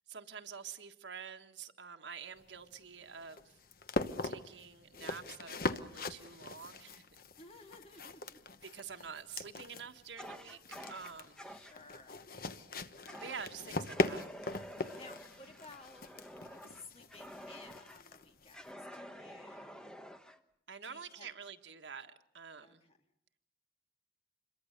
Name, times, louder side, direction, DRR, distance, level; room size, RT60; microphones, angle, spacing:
voice 1, 0.1-3.6 4.2-7.0 8.6-11.4 13.2-14.2 20.7-22.8, right 6 dB, 85° right, 7 dB, 1.5 m, -47 dB
sound 1, 2.4-18.7, left 2 dB, 50° left, 1.0 m, -41 dB
voice 2, 7.4-8.4 11.5-12.2 14.7-16.1 16.6-19.9 20.8-21.4 22.6-23.0, left 3 dB, 35° left, 4 dB, 2.1 m, -56 dB
Fire, 10.2-11.8 13.1-13.5 13.8-18.0 18.5-20.4, equal, 5° left, 1.2 m, -49 dB
27.0 x 22.5 x 6.7 m, 0.72 s
head